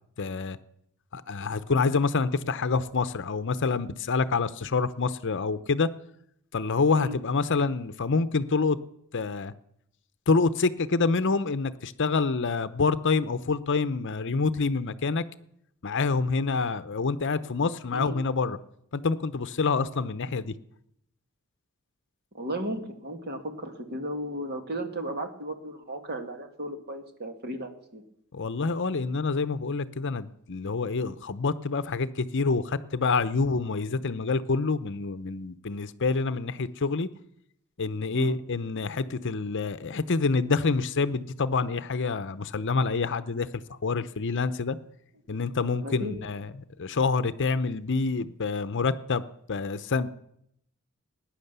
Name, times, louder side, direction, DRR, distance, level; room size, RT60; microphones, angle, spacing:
voice 1, 0.2-0.6 1.1-5.9 6.5-8.8 9.1-9.5 10.3-15.2 15.8-18.6 18.9-20.5 28.3-37.1 37.8-44.8 45.3-49.2 49.5-50.1, left 4 dB, 55° left, 0.7 m, -27 dB
voice 2, 22.3-28.0 38.1-38.3 45.8-46.2, right 1 dB, 45° right, 2.1 m, -35 dB
20.5 x 10.0 x 6.8 m
head